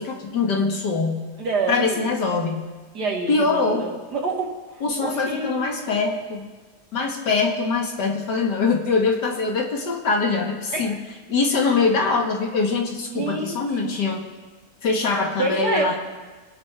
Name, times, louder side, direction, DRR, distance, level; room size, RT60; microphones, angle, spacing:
voice 1, 0.0-1.2 1.7-2.7 3.3-3.9 4.8-6.5 6.9-11.0 11.3-14.3 14.8-16.0, left 4 dB, 90° left, 1 dB, 2.3 m, -23 dB
voice 2, 1.4-2.2 2.9-6.0 10.7-11.0 13.1-13.9 15.4-16.0, right 3 dB, 70° right, 0 dB, 2.4 m, -28 dB
23.0 x 10.0 x 3.5 m, 1.3 s
omnidirectional pair, 1.8 m